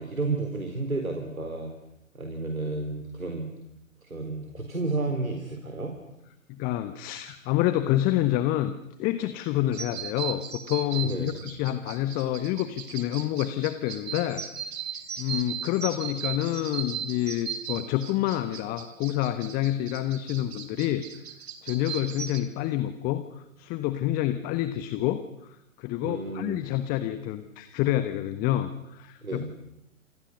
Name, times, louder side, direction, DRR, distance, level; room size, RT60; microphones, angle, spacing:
voice 1, 0.0-1.7 2.1-3.5 4.0-5.9 11.0-11.4 26.0-26.6 29.2-29.5, right 3 dB, 80° right, 5 dB, 4.3 m, -31 dB
voice 2, 6.5-8.7 9.0-14.4 15.2-21.0 21.6-25.2 25.8-29.5, left 13 dB, 20° left, 11 dB, 1.2 m, -28 dB
sound 1, 9.7-22.4, right 8 dB, 50° right, 3.2 m, -37 dB
29.5 x 28.0 x 6.5 m, 0.87 s
figure-of-eight pair, 120°, 41 cm